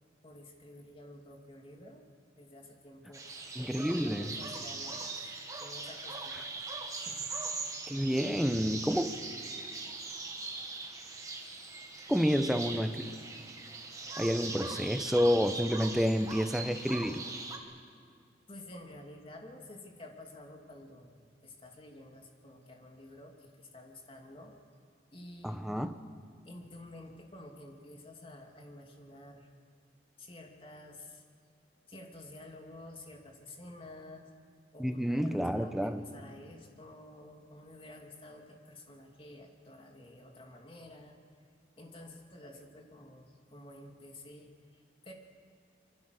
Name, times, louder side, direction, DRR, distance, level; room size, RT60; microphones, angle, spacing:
voice 1, 0.2-2.0 2.4-3.2 3.9-5.0 5.6-6.4 6.9-7.3 9.6-9.7 18.5-24.5 25.1-25.9 26.5-29.5 30.2-31.2 31.9-34.3 34.7-41.2 41.8-44.5 45.0-45.1, left 1 dB, 30° left, 2 dB, 2.6 m, -51 dB
sound 1, 3.1-17.6, right 3 dB, 20° right, 2.0 m, -41 dB
voice 2, 3.5-4.4 6.3-6.4 7.9-9.1 12.1-13.0 14.2-17.2 25.4-25.9 34.8-36.1, equal, ahead, 8 dB, 0.9 m, -29 dB
26.5 x 23.5 x 6.6 m, 2.2 s
head